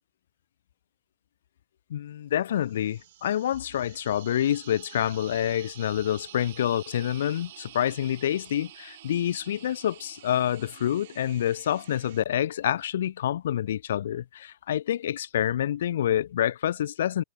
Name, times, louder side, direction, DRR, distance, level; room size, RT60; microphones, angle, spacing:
voice 1, 1.9-17.2, left 11 dB, 75° left, 0.5 m, -27 dB
sound 1, 2.5-12.2, right 14 dB, 55° right, 1.1 m, -49 dB
supercardioid pair, 170°, 0 cm